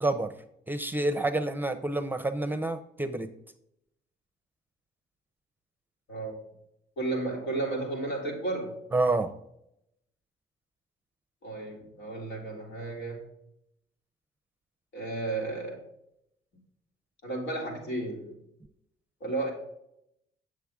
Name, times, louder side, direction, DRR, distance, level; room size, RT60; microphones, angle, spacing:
voice 1, 0.0-0.3 0.7-3.3 8.9-9.3, right 2 dB, 10° right, 8 dB, 0.7 m, -28 dB
voice 2, 7.0-8.8 11.4-13.2 14.9-15.8 17.2-18.3 19.2-19.5, right 2 dB, 80° left, -1 dB, 2.6 m, -33 dB
7.9 x 6.6 x 3.6 m, 0.79 s
cardioid pair, 90°, 20 cm